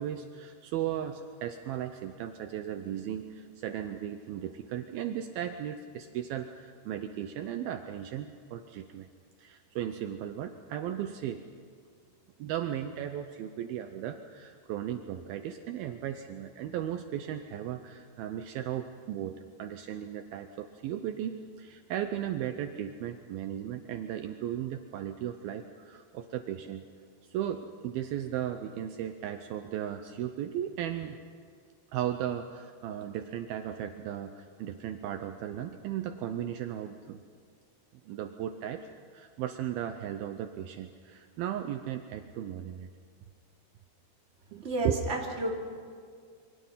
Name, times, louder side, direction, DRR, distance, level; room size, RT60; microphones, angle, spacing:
voice 1, 0.0-9.1 9.4-11.4 12.4-26.8 27.3-31.2 31.9-37.2 38.0-38.9 39.1-42.9 44.5-45.0, right 10 dB, 85° right, 7 dB, 2.1 m, -36 dB
voice 2, 44.6-45.5, right 2 dB, 20° right, -2 dB, 2.7 m, -31 dB
28.0 x 24.0 x 5.7 m, 2.1 s
omnidirectional pair, 5.4 m